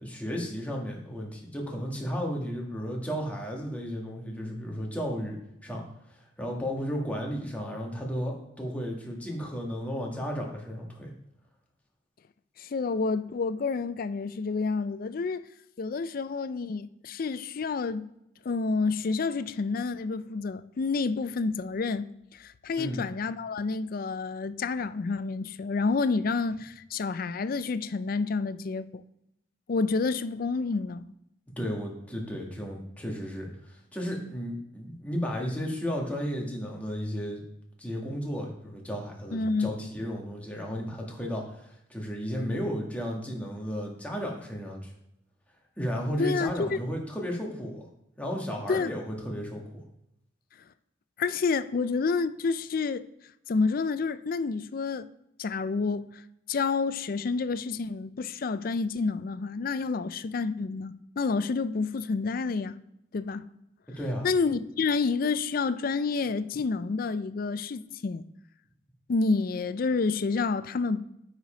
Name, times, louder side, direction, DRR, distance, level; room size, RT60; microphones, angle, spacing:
voice 1, 0.0-11.1 22.8-23.1 31.6-37.4 37.8-44.9 45.8-47.9 48.2-49.8 64.0-64.3, equal, 5° left, 1.5 m, -34 dB
voice 2, 12.6-15.4 15.8-18.1 18.4-22.1 22.3-29.0 29.7-31.0 39.3-39.9 46.2-46.8 48.7-48.9 51.2-53.0 53.5-55.1 55.4-56.2 56.5-62.8 63.1-63.5 64.2-68.2 69.1-71.0, left 4 dB, 50° left, 0.4 m, -29 dB
8.1 x 5.0 x 4.9 m
head